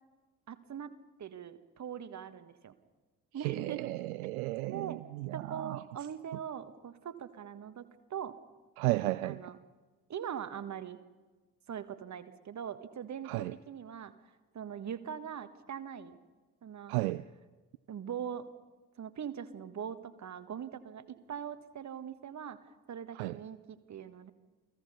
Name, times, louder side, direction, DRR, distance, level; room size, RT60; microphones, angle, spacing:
voice 1, 0.5-0.9 1.2-2.7 3.3-3.9 4.7-5.0 5.3-8.4 9.2-9.6 10.1-11.0 11.7-14.1 14.5-16.2 16.6-16.9 17.9-18.5 19.0-22.6 22.9-24.3, right 8 dB, 40° right, 1.6 m, -41 dB
voice 2, 3.4-5.8 8.8-9.4 13.2-13.5 16.9-17.2 23.1-23.4, right 19 dB, 70° right, 0.6 m, -34 dB
29.0 x 18.5 x 5.5 m
figure-of-eight pair, 45°, 45 cm